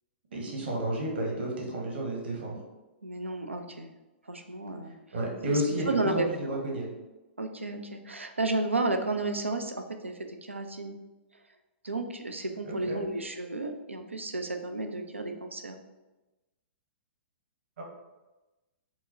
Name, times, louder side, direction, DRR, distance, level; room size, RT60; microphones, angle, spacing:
voice 1, 0.3-2.6 5.1-6.9 12.6-13.0 17.8-17.9, right 1 dB, 60° right, -1 dB, 1.0 m, -31 dB
voice 2, 3.0-3.9 4.3-4.9 5.9-6.6 7.4-10.9 11.8-15.8, right 2 dB, 85° right, 6 dB, 0.4 m, -32 dB
4.6 x 2.1 x 2.6 m, 1.1 s
figure-of-eight pair, 110°, 6 cm